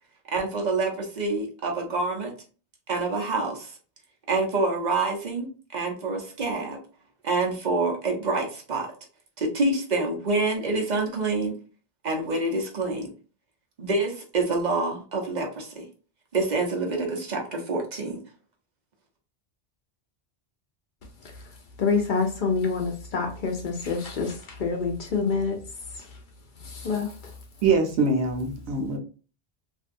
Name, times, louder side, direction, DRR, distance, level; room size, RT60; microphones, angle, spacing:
voice 1, 0.3-2.3 2.9-3.8 4.3-6.8 7.2-8.9 9.4-11.5 12.0-13.1 13.8-15.8 16.3-18.2, right 3 dB, 45° right, 1 dB, 0.8 m, -27 dB
voice 2, 21.8-25.6 25.9-26.1 26.6-27.3, left 4 dB, 55° left, 3 dB, 0.6 m, -27 dB
voice 3, 27.6-29.0, right 3 dB, 90° right, 4 dB, 1.0 m, -23 dB
2.6 x 2.3 x 2.5 m, 0.36 s
omnidirectional pair, 1.1 m